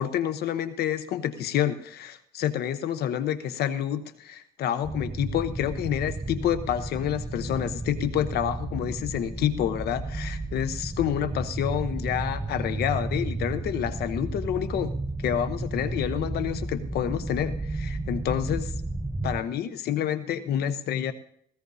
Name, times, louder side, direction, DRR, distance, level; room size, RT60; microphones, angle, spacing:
voice 1, 0.0-14.9 15.2-18.7 19.2-21.1, left 10 dB, 70° left, 11 dB, 1.0 m, -28 dB
sound 1, 4.8-19.4, right 2 dB, 10° right, 0.6 m, -33 dB
19.0 x 16.5 x 2.7 m, 0.67 s
cardioid pair, 110°, 17 cm